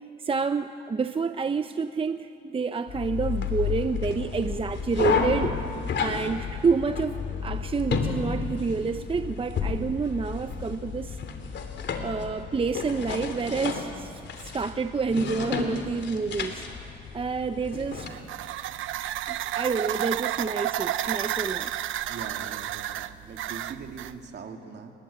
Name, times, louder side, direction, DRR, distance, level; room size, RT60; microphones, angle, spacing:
voice 1, 0.2-5.6 6.0-7.2 7.4-11.2 12.0-16.6 17.1-18.1 19.3-21.7, right 5 dB, 25° right, 9 dB, 0.8 m, -28 dB
sound 1, 2.9-18.1, left 6 dB, 65° left, 3.3 m, -31 dB
sound 2, 17.9-24.2, right 12 dB, 80° right, 0.8 m, -31 dB
voice 2, 22.1-24.9, right 5 dB, 60° right, 3 dB, 3.0 m, -41 dB
29.0 x 22.5 x 8.9 m, 2.6 s
cardioid pair, 90°, 20 cm